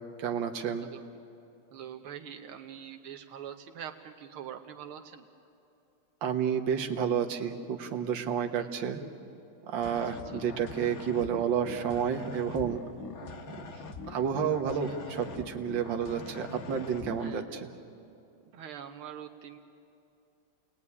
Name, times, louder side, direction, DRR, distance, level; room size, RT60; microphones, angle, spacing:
voice 1, 0.2-0.9 6.2-9.0 9.6-12.8 14.1-17.7, right 7 dB, 65° right, 4 dB, 2.0 m, -30 dB
voice 2, 1.7-5.3 8.6-8.7 10.1-10.4 13.2-13.3 13.7-13.9 14.7-15.0 17.2-17.6 18.5-19.6, right 9 dB, 85° right, 4 dB, 1.9 m, -44 dB
sound 1, 9.8-17.4, left 3 dB, 45° left, 1.6 m, -43 dB
29.5 x 20.0 x 9.8 m, 2.7 s
omnidirectional pair, 2.3 m